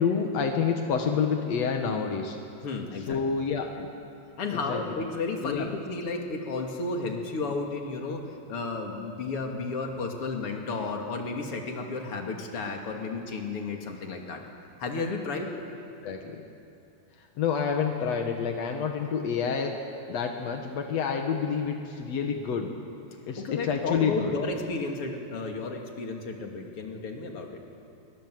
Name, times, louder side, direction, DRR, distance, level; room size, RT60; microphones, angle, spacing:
voice 1, 0.0-2.4 3.1-3.9 4.7-4.8 5.4-5.7 16.0-16.4 17.4-19.7 20.1-22.7 23.2-24.4, left 6 dB, 65° left, 3 dB, 1.6 m, -28 dB
voice 2, 2.6-3.2 4.4-8.2 8.5-14.4 14.8-15.5 23.4-27.6, left 3 dB, 35° left, 2 dB, 2.7 m, -33 dB
28.5 x 24.5 x 7.9 m, 2.6 s
omnidirectional pair, 5.3 m